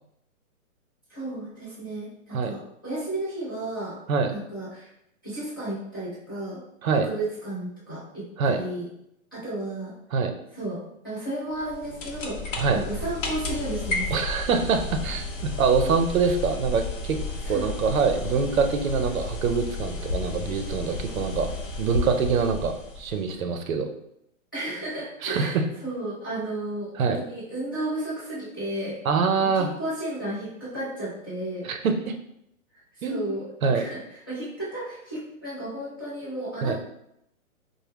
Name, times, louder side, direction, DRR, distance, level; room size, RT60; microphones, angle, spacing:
voice 1, 1.1-4.0 4.3-4.9 5.2-6.6 6.9-8.9 9.3-9.9 10.5-12.4 12.7-14.1 17.4-17.7 23.3-23.4 24.5-29.0 29.4-31.7 32.7-36.8, right 1 dB, 15° left, -11 dB, 0.4 m, -33 dB
sound 1, 11.5-23.3, left 3 dB, 60° left, 0.8 m, -33 dB
voice 2, 14.1-17.2 17.5-21.5 21.8-23.9 25.2-25.6 27.0-27.2 29.1-29.7 31.6-32.1 33.0-33.2 33.6-33.8 36.6-36.8, right 5 dB, 70° right, 6 dB, 0.6 m, -24 dB
2.9 x 2.1 x 3.3 m, 0.78 s
hypercardioid pair, 155°, 42 cm